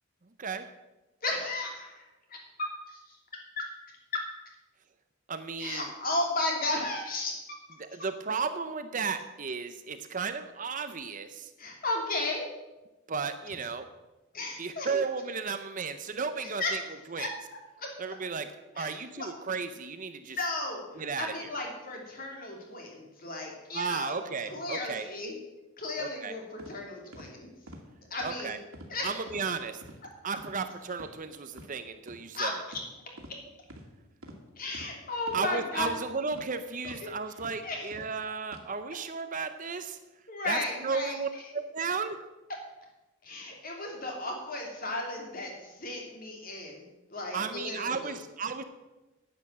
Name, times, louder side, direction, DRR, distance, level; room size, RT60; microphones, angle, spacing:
voice 1, 1.2-2.0 2.3-3.7 4.1-4.3 5.6-7.3 11.6-12.4 14.3-14.9 16.4-17.3 17.8-18.1 18.7-19.3 20.3-24.1 24.5-25.3 25.8-27.5 28.1-28.6 28.9-29.1 32.3-32.8 33.3-33.4 34.6-36.0 36.8-37.1 37.6-37.9 40.3-41.4 43.2-46.8 47.1-48.2, left 2 dB, 40° left, 1 dB, 2.8 m, -35 dB
voice 2, 5.3-5.9 7.8-11.5 13.1-13.9 14.6-16.8 17.1-17.3 18.0-18.5 18.8-20.4 21.0-21.5 23.7-25.1 26.0-26.3 28.2-28.6 29.0-29.8 30.2-32.5 35.3-40.0 40.5-42.2 47.3-48.6, right 5 dB, 35° right, 10 dB, 0.6 m, -34 dB
sound 1, 26.6-26.7 27.1-27.3 27.7-27.8 28.2-28.4 28.7-28.9 29.3-29.4 29.8-30.0 30.4-30.6 30.9-31.1 31.5-31.7 32.1-32.2 32.7-32.9 33.2-33.3 33.7-33.8 34.2-34.4 34.7-34.9 35.3-35.4 35.8-35.9 36.3-36.5 36.8-37.0 37.4-37.5 37.9-38.1 38.5-38.6, right 1 dB, 70° right, 2.1 m, -47 dB
9.9 x 8.9 x 7.2 m, 1.1 s
head